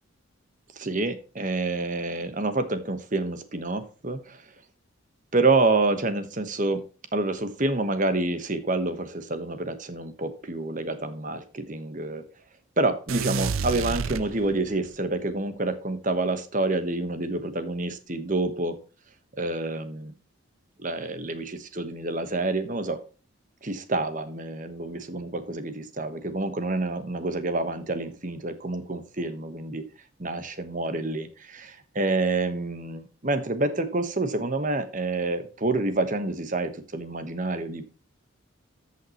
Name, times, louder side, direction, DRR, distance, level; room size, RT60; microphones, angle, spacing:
voice 1, 0.8-4.4 5.3-6.8 7.1-12.2 12.8-18.8 19.4-20.1 20.8-23.0 23.6-29.8 30.2-37.8, right 2 dB, 35° right, 9 dB, 1.2 m, -28 dB
sound 1, 13.1-14.9, right 5 dB, 75° right, 0.6 m, -30 dB
14.0 x 5.7 x 3.0 m, 0.35 s
head